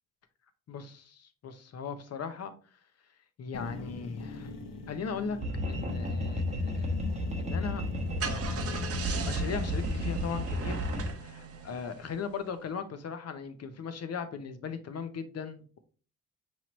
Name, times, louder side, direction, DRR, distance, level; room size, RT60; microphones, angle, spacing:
voice 1, 0.7-2.8 3.4-4.5 4.9-5.4 5.7-7.8 8.2-8.8 9.1-15.8, left 6 dB, 50° left, 0.7 m, -38 dB
sound 1, 3.5-10.3, left 6 dB, 80° left, 1.1 m, -42 dB
sound 2, 5.4-11.1, left 1 dB, 20° right, 0.9 m, -32 dB
Car / Engine starting, 7.8-12.5, right 5 dB, 45° right, 0.7 m, -39 dB
5.5 x 3.1 x 3.0 m
cardioid pair, 135°, 33 cm